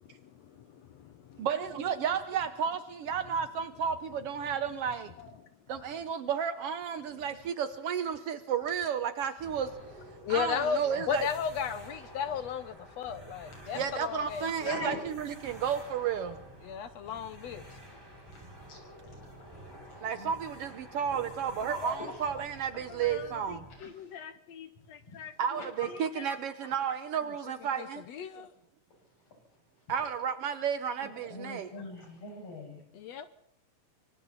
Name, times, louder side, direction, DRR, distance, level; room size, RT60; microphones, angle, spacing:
voice 1, 0.5-1.0 10.2-14.7 16.6-17.6 22.9-25.3 25.9-26.3 27.7-28.5 32.9-33.3, left 7 dB, 70° left, 12 dB, 1.7 m, -36 dB
voice 2, 1.4-5.1 5.7-9.7 10.3-11.3 13.7-16.4 20.0-23.7 25.4-28.0 29.9-31.7, right 7 dB, 80° right, 11 dB, 1.3 m, -32 dB
sound 1, 9.4-23.8, right 1 dB, 5° right, 7.0 m, -50 dB
voice 3, 14.6-15.0 18.3-18.4 18.7-20.3 21.1-21.2 21.6-22.2 22.7-22.8 23.8-24.1 25.1-25.2 25.6-25.9 31.0-32.8, left 1 dB, 45° left, 0 dB, 7.5 m, -42 dB
26.0 x 24.5 x 4.2 m, 0.75 s
omnidirectional pair, 4.0 m